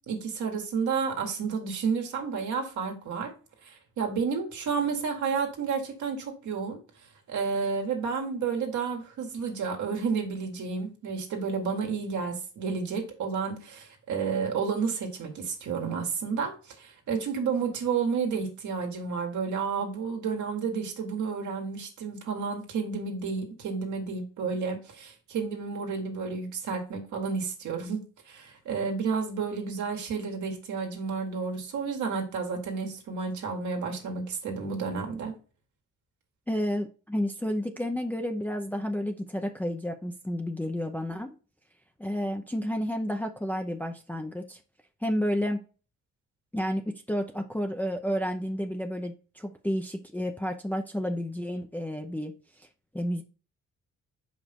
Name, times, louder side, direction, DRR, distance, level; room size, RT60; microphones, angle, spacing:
voice 1, 0.1-3.3 3.6-6.8 7.3-35.4, right 5 dB, 75° right, 1.8 m, -31 dB
voice 2, 36.5-41.4 42.0-44.6 45.0-45.6 46.5-52.3 52.6-52.7 52.9-53.2, equal, 5° left, 0.6 m, -31 dB
5.5 x 5.1 x 3.6 m
cardioid pair, 90°, 30 cm